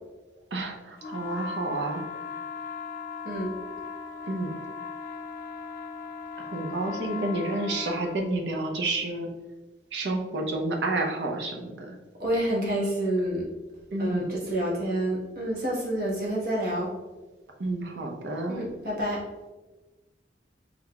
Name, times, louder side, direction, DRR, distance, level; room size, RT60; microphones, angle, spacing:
voice 1, 0.5-2.0 4.3-4.5 6.4-9.3 9.9-11.9 13.9-14.4 17.6-18.7, right 2 dB, 80° right, 2 dB, 0.7 m, -30 dB
sound 1, 1.0-8.2, left 5 dB, 50° left, 0.4 m, -38 dB
voice 2, 12.2-13.4 14.0-16.9 18.5-19.2, right 1 dB, 55° right, -4 dB, 1.3 m, -28 dB
5.5 x 3.6 x 2.3 m, 1.2 s
head